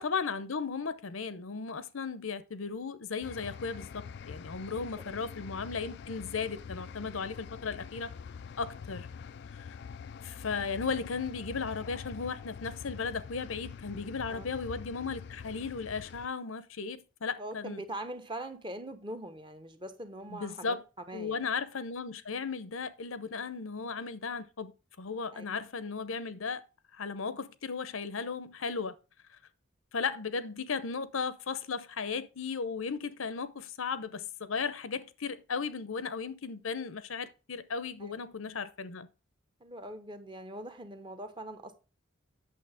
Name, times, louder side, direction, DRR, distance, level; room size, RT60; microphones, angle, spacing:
voice 1, 0.0-8.1 8.6-9.1 10.2-17.8 20.3-20.8 21.1-24.7 25.0-26.6 27.0-28.9 29.9-39.1, left 5 dB, 80° left, 0.8 m, -36 dB
sound 1, 3.2-16.3, left 6 dB, 55° left, 0.3 m, -45 dB
voice 2, 17.4-20.8 21.1-21.4 25.3-25.4 38.0-38.1 39.6-41.8, right 1 dB, 25° right, 1.0 m, -42 dB
8.6 x 6.8 x 3.5 m
head